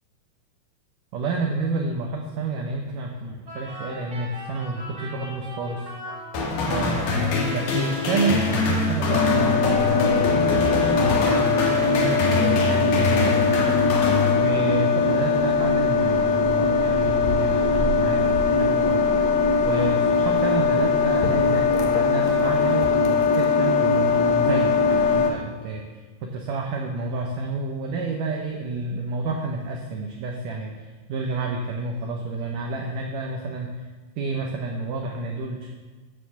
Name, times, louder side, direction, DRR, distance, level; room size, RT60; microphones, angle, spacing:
voice 1, 1.1-5.9 6.7-19.3 19.6-25.8 26.2-33.8 34.2-35.7, right 3 dB, 75° right, 2 dB, 2.0 m, -30 dB
sound 1, 3.4-7.0, equal, 45° right, 1.3 m, -39 dB
sound 2, 6.3-14.9, left 3 dB, 60° left, 2.5 m, -24 dB
sound 3, 9.1-25.3, left 5 dB, 75° left, 1.6 m, -21 dB
9.1 x 6.7 x 6.9 m, 1.3 s
omnidirectional pair, 4.7 m